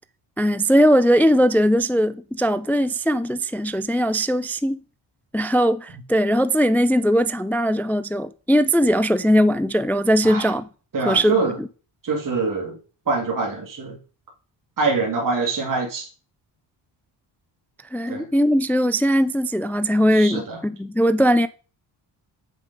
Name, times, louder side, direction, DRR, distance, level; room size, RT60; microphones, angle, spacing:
voice 1, 0.4-4.8 5.3-10.7 11.0-11.7 17.9-21.5, equal, 5° left, 0.3 m, -19 dB
voice 2, 10.9-11.5 12.0-12.8 13.1-14.0 14.8-16.1 18.1-18.3 20.1-20.6, right 3 dB, 40° right, 2.1 m, -24 dB
7.3 x 5.4 x 5.2 m
cardioid pair, 70°, 48 cm